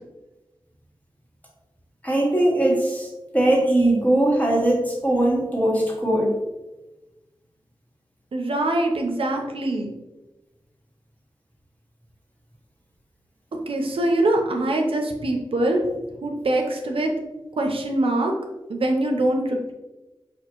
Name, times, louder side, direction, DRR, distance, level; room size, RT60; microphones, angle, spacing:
voice 1, 2.0-3.1 3.3-6.3, right 1 dB, 15° left, -2 dB, 1.2 m, -20 dB
voice 2, 8.3-9.9 13.7-15.8 16.2-17.1 17.6-18.3 18.7-19.7, right 1 dB, 75° right, 1 dB, 0.6 m, -23 dB
5.0 x 2.4 x 2.9 m, 1.1 s
wide cardioid pair, 55°, 9 cm